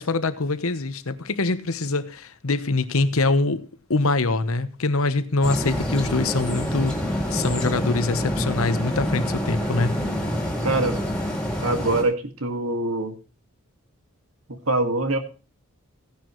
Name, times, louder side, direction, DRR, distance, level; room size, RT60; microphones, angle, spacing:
voice 1, 0.0-3.6 3.9-10.0, left 3 dB, 70° left, 1.0 m, -24 dB
sound 1, 5.4-12.0, equal, 5° left, 3.6 m, -27 dB
voice 2, 10.6-11.0 11.6-13.1 14.5-15.2, right 2 dB, 70° right, 2.0 m, -24 dB
16.0 x 10.5 x 3.1 m
head